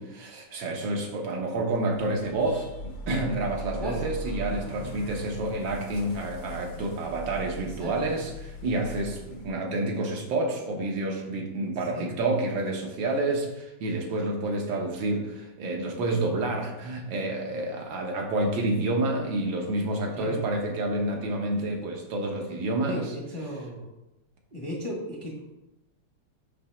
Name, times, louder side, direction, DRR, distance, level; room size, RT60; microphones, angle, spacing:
voice 1, 0.0-23.2, right 2 dB, 80° right, 1 dB, 1.7 m, -29 dB
sound 1, 1.9-9.5, equal, 80° left, 1.8 m, -40 dB
voice 2, 7.8-8.2 11.9-12.1 20.1-20.4 22.8-23.9 24.5-25.3, equal, 25° left, -2 dB, 0.6 m, -35 dB
6.5 x 2.8 x 5.7 m, 0.94 s
omnidirectional pair, 2.0 m